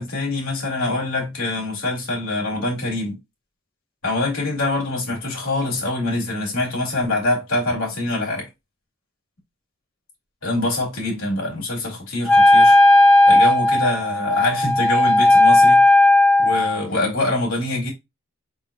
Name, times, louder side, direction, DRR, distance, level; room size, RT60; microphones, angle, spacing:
voice 1, 0.0-3.2 4.0-8.5 10.4-12.8 13.3-15.8 16.4-17.9, left 2 dB, 90° left, 2.2 m, -24 dB
Wind instrument woodwind instrument, 12.3-16.8, left 1 dB, 5° left, 0.6 m, -14 dB
4.9 x 4.0 x 2.3 m
head